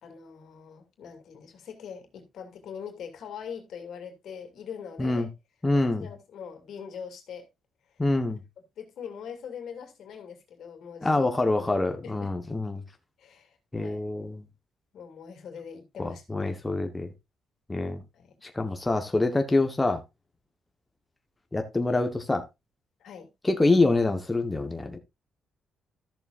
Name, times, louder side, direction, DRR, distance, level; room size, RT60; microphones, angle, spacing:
voice 1, 0.0-5.3 5.7-7.5 8.8-11.3 11.5-11.8 12.0-12.3 13.2-14.0 14.9-16.5 18.1-18.3 23.0-23.3, left 7 dB, 70° left, 2.4 m, -42 dB
voice 2, 5.6-6.1 8.0-8.4 11.0-12.8 13.7-14.5 16.0-17.1 17.7-18.0 18.4-20.0 21.5-22.4 23.4-25.0, left 2 dB, 15° left, 1.2 m, -26 dB
13.5 x 6.9 x 2.5 m
cardioid pair, 90°, 0 cm